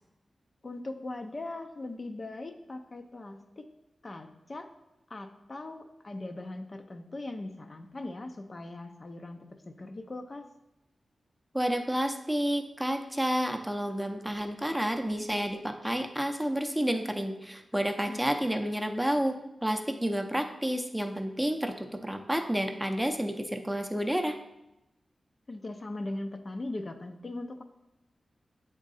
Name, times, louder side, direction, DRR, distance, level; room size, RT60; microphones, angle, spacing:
voice 1, 0.6-3.7 4.0-4.7 5.1-10.5 18.1-18.2 25.5-27.6, left 2 dB, 40° left, 6 dB, 0.5 m, -40 dB
voice 2, 11.5-19.4 19.6-24.4, equal, 5° right, 5 dB, 0.6 m, -30 dB
7.9 x 3.7 x 4.0 m, 0.92 s
cardioid pair, 65°, 0 cm